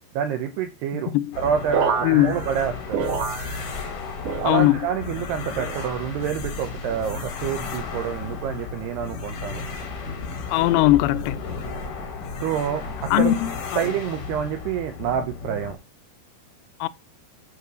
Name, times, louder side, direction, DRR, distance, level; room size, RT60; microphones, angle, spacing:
voice 1, 0.1-3.1 4.4-9.6 12.4-13.3 13.8-15.8, right 8 dB, 80° right, 2.4 m, -27 dB
voice 2, 0.9-1.4 2.0-2.4 4.4-4.8 10.5-11.4 13.1-13.5 16.8-16.9, left 15 dB, 85° left, 3.3 m, -19 dB
sound 1, 1.3-15.7, left 5 dB, 55° left, 2.5 m, -35 dB
sound 2, 1.7-3.9 4.2-5.1 5.6-6.3 6.9-7.3 8.2-8.6 9.5-9.8, right 6 dB, 60° right, 2.2 m, -30 dB
sound 3, 2.4-13.4, left 2 dB, 35° left, 1.1 m, -39 dB
11.5 x 4.4 x 6.1 m
omnidirectional pair, 5.8 m